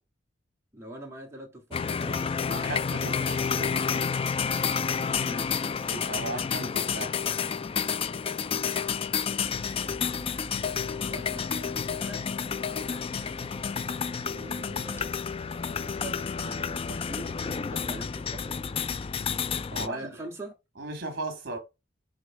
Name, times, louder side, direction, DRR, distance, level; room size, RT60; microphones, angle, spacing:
voice 1, 0.7-2.3 5.2-5.6 10.8-12.3 14.2-15.3 15.6-18.9 19.7-20.5, right 1 dB, 15° right, 2.3 m, -43 dB
sound 1, 1.7-19.9, left 6 dB, 30° left, 0.3 m, -30 dB
voice 2, 2.5-3.9 5.9-7.3 11.9-12.1 19.7-20.1 20.8-21.6, right 2 dB, 55° right, 2.7 m, -37 dB
sound 2, 9.4-15.1, right 2 dB, 10° left, 1.4 m, -50 dB
6.2 x 3.9 x 5.0 m
head